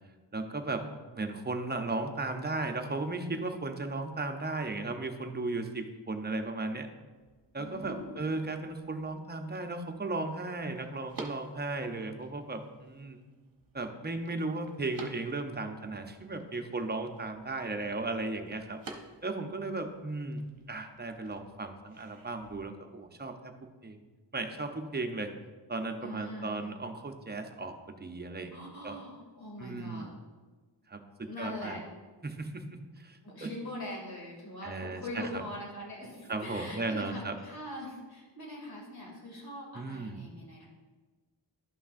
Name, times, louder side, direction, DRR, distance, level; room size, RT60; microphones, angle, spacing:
voice 1, 0.3-0.9 1.1-6.9 7.5-13.2 13.7-18.8 19.2-24.0 24.3-25.3 25.7-29.0 29.6-30.1 30.9-31.8 32.2-33.5 34.6-35.4 36.3-37.4 39.7-40.2, right 3 dB, 25° right, 5 dB, 0.6 m, -36 dB
sound 1, 7.1-22.6, right 3 dB, 50° right, 0.9 m, -52 dB
voice 2, 7.6-8.2 26.0-26.7 28.5-30.1 31.2-31.8 33.2-40.7, left 1 dB, 55° left, -3 dB, 2.3 m, -42 dB
11.5 x 5.7 x 2.5 m, 1.3 s
wide cardioid pair, 115°, 44 cm